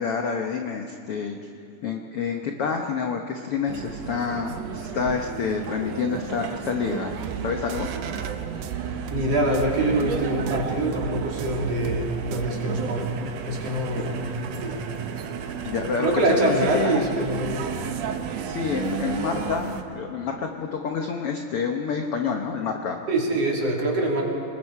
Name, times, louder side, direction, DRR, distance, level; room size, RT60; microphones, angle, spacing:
voice 1, 0.0-1.4 1.8-7.1 7.4-7.9 15.6-17.0 18.4-23.0, left 6 dB, 75° left, 3 dB, 1.3 m, -28 dB
sound 1, 3.7-19.8, right 7 dB, 65° right, 1.7 m, -33 dB
sound 2, 7.1-12.5, right 10 dB, 85° right, 2.6 m, -36 dB
voice 2, 8.5-13.1 13.5-14.2 14.6-14.8 16.0-17.7 23.1-24.2, right 1 dB, 45° right, -2 dB, 3.8 m, -25 dB
28.0 x 21.0 x 4.7 m, 2.3 s
omnidirectional pair, 4.1 m